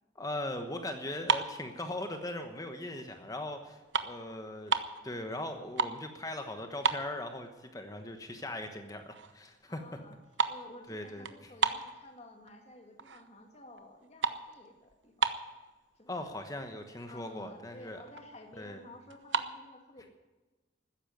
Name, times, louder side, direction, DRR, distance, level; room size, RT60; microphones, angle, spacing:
voice 1, 0.1-4.7 5.0-9.8 10.9-11.5 16.1-18.0 18.6-18.8, left 1 dB, 20° left, 6 dB, 1.1 m, -39 dB
sound 1, 1.1-2.5 3.0-3.2 3.6-5.0 5.5-6.1 6.4-6.5 6.8-7.7 8.1-8.2 8.8-8.9 9.1-9.5 9.7-12.5 13.0-13.4 13.7-15.7 16.4-16.5 16.7-16.9 17.3-17.4 17.6-18.3 19.1-19.5, right 5 dB, 75° right, 0.9 m, -33 dB
voice 2, 9.7-10.2 10.5-15.3 16.0-16.3 17.1-20.1, left 1 dB, 35° left, 3 dB, 2.1 m, -53 dB
14.0 x 10.0 x 9.2 m, 1.2 s
head